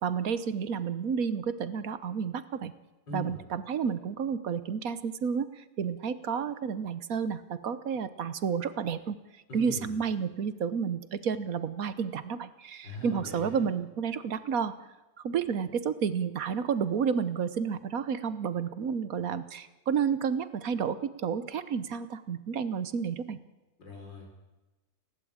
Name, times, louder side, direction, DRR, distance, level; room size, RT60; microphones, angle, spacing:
voice 1, 0.0-2.7 3.1-9.2 9.5-14.7 15.2-23.4, right 6 dB, 55° right, 14 dB, 1.3 m, -31 dB
voice 2, 3.1-3.4 9.5-9.9 12.8-13.7 23.8-24.4, left 2 dB, 85° left, 1 dB, 5.8 m, -41 dB
29.5 x 12.0 x 8.8 m, 1.1 s
omnidirectional pair, 1.9 m